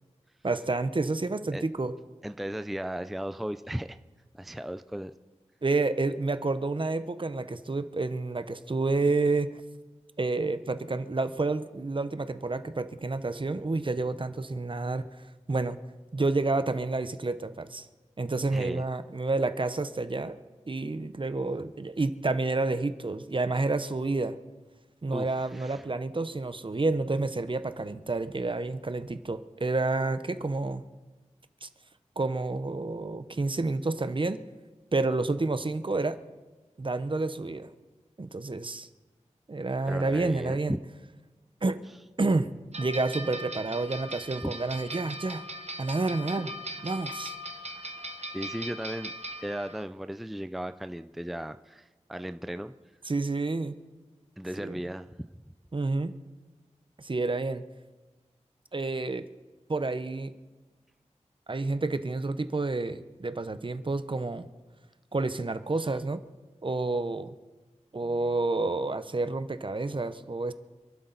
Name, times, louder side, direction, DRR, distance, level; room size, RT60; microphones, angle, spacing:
voice 1, 0.4-1.9 5.6-9.5 10.2-15.0 15.5-15.8 16.1-17.9 18.2-20.4 20.7-24.4 25.0-30.8 31.6-31.7 32.2-34.4 34.9-36.2 36.8-37.7 38.2-38.9 39.5-40.8 41.6-41.8 42.2-42.5 42.8-45.4 45.8-46.5 46.8-47.3 53.1-53.8 54.6-54.8 55.7-56.1 57.0-57.6 58.7-59.3 59.7-60.3 61.5-64.5 65.1-66.2 66.6-67.3 67.9-70.5, right 3 dB, 45° right, 11 dB, 0.8 m, -29 dB
voice 2, 2.2-4.0 4.3-5.1 18.5-18.9 25.1-25.8 39.9-40.8 44.4-44.5 48.3-49.1 49.4-52.7 54.4-55.1, equal, ahead, 10 dB, 0.5 m, -36 dB
sound 1, 42.7-49.8, right 1 dB, 60° right, 1.2 m, -39 dB
27.0 x 12.0 x 4.1 m, 1.2 s
wide cardioid pair, 75°, 12 cm